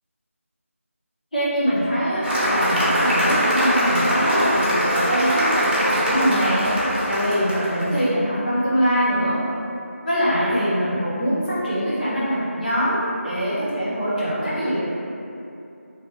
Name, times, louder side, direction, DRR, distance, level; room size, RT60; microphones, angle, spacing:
voice 1, 1.3-6.7 7.0-9.4 10.0-13.0 13.2-14.8, equal, 35° left, -11 dB, 0.9 m, -23 dB
Cheering / Applause, 2.2-8.0, equal, 40° right, 0.8 m, -22 dB
2.5 x 2.4 x 2.8 m, 2.7 s
figure-of-eight pair, 175°, 8 cm